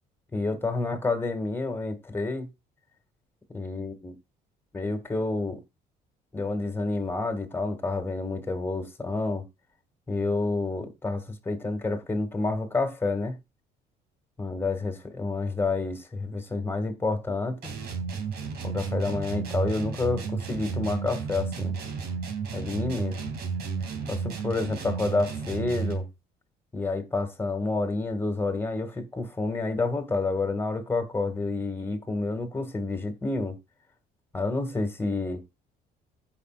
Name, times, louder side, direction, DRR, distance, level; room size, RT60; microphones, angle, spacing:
voice 1, 0.3-2.5 3.5-4.1 4.7-5.6 6.3-9.4 10.1-13.4 14.4-17.7 18.6-21.7 22.5-23.2 24.1-26.1 26.7-33.6 34.3-35.4, left 3 dB, 15° left, 2.2 m, -29 dB
sound 1, 17.6-26.1, right 5 dB, 70° right, 2.8 m, -33 dB
15.5 x 5.8 x 2.5 m
cardioid pair, 110°, 17 cm